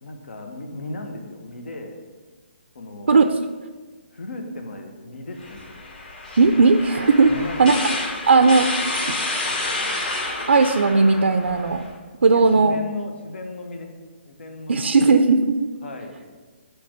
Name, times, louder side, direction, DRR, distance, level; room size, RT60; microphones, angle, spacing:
voice 1, 0.0-2.0 2.7-3.2 4.1-5.8 7.2-7.9 12.3-13.9 14.2-15.2 15.8-16.1, left 2 dB, 75° left, 3 dB, 1.4 m, -36 dB
sound 1, 5.4-11.9, left 2 dB, 55° left, 2.6 m, -29 dB
voice 2, 6.4-7.8 8.3-8.7 10.5-11.8 12.2-12.8 14.7-15.7, right 4 dB, 90° right, 7 dB, 0.5 m, -17 dB
9.9 x 3.4 x 6.6 m, 1.4 s
hypercardioid pair, 170°, 6 cm